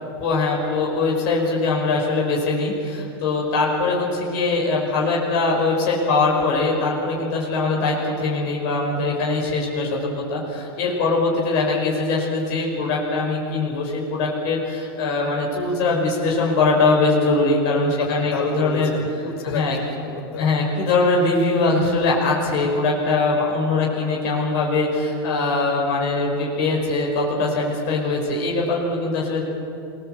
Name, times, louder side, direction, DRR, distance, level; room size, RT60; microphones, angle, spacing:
voice 1, 0.2-18.9 19.4-19.8 20.4-29.4, left 3 dB, 35° left, -2 dB, 5.4 m, -22 dB
voice 2, 18.0-20.5, left 5 dB, 80° left, 4 dB, 5.8 m, -29 dB
26.5 x 20.0 x 8.0 m, 2.7 s
supercardioid pair, 175°, 13 cm